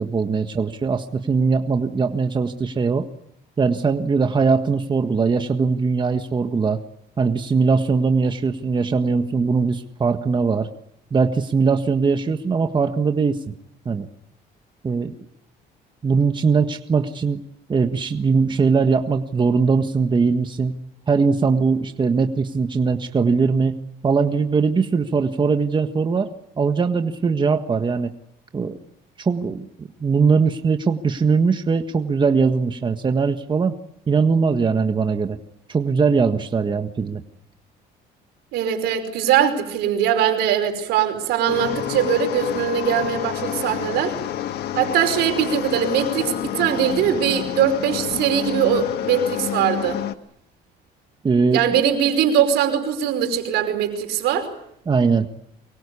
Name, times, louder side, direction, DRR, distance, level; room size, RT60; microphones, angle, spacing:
voice 1, 0.0-3.1 3.6-6.8 7.2-10.7 11.1-13.5 13.8-14.1 14.8-15.1 16.0-17.4 17.7-20.7 21.1-23.8 24.0-28.1 28.5-28.8 29.2-33.7 34.1-35.4 35.7-37.2 51.2-51.8 54.9-55.3, right 5 dB, 25° right, 7 dB, 1.6 m, -20 dB
voice 2, 38.5-44.2 44.7-50.0 51.5-54.5, right 9 dB, 85° right, 6 dB, 5.2 m, -21 dB
sound 1, 41.5-50.1, left 11 dB, 75° left, 1.5 m, -28 dB
24.5 x 23.0 x 8.5 m, 0.74 s
cardioid pair, 110°, 17 cm